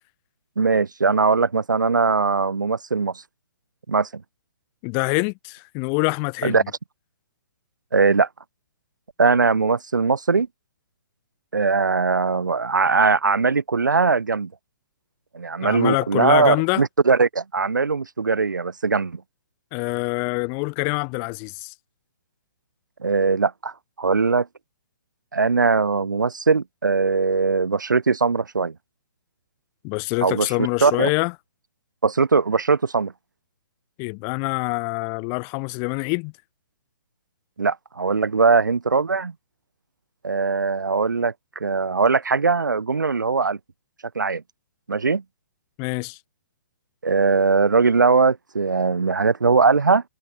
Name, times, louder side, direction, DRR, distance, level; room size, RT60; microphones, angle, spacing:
voice 1, 0.6-3.2 3.9-4.2 6.4-6.6 7.9-8.3 9.2-10.5 11.5-14.5 15.3-19.2 23.0-23.7 24.0-24.5 25.3-28.7 30.2-31.1 32.0-33.1 37.6-39.3 40.2-43.6 44.1-44.4 44.9-45.2 47.0-50.0, right 4 dB, 70° right, 6.1 m, -20 dB
voice 2, 4.8-6.6 15.6-16.8 19.7-21.7 29.8-31.3 34.0-36.3 45.8-46.2, left 40 dB or more, 30° left, 7.3 m, -25 dB
figure-of-eight pair, 125°, 10 cm